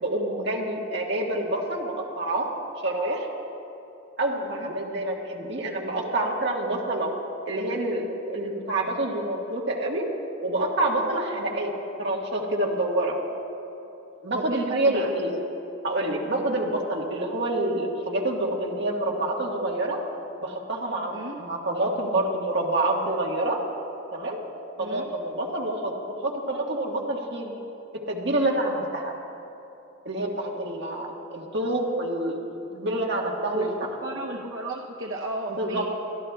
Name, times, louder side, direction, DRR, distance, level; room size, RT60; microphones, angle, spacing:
voice 1, 0.0-2.5 2.8-3.3 4.2-7.1 7.5-10.1 10.4-11.7 12.0-13.2 14.2-15.3 15.8-20.0 20.4-21.1 21.4-23.6 24.1-24.4 24.8-26.0 26.2-27.5 28.1-29.1 30.0-32.4 32.7-33.7 35.5-35.8, right 1 dB, 60° right, -1 dB, 1.5 m, -27 dB
voice 2, 4.4-4.7 11.5-11.6 14.3-15.1 21.1-21.3 24.8-25.0 33.5-33.7 34.0-35.8, right 2 dB, 85° right, -1 dB, 0.8 m, -33 dB
23.5 x 13.0 x 2.3 m, 2.9 s
head